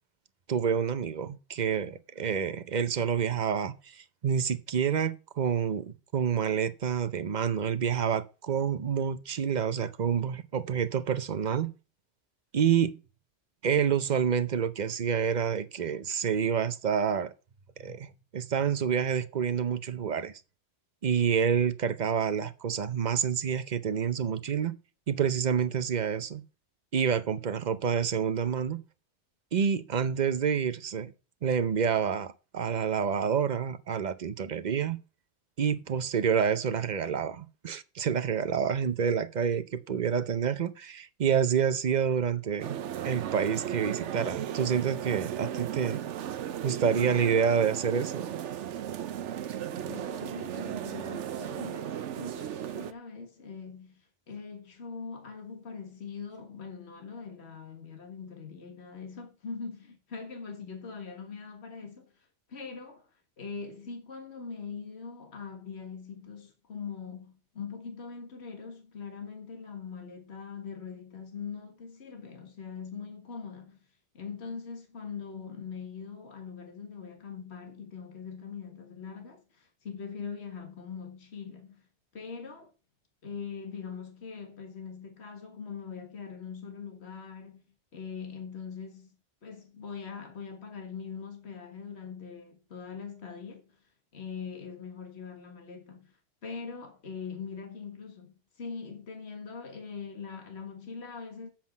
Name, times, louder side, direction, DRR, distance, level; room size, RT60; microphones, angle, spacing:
voice 1, 0.5-11.7 12.5-13.0 13.6-17.3 17.8-20.4 21.0-24.8 25.1-26.4 26.9-28.8 29.5-31.1 31.4-35.0 35.6-42.8 43.0-46.0 46.6-48.4, right 7 dB, 45° right, 0.7 m, -28 dB
sound 1, 42.6-52.9, right 10 dB, 85° right, 1.0 m, -36 dB
sound 2, 47.1-48.2 49.8-50.5 51.6-52.3 54.3-54.4 55.3-55.4 56.3-56.4, right 1 dB, 50° left, 3.8 m, -53 dB
voice 2, 49.7-63.1 63.4-73.8 74.1-81.9 82.1-82.7 83.2-89.2 89.4-93.8 94.1-96.2 96.4-101.5, left 5 dB, 70° left, 1.9 m, -42 dB
7.5 x 5.9 x 7.4 m
omnidirectional pair, 1.2 m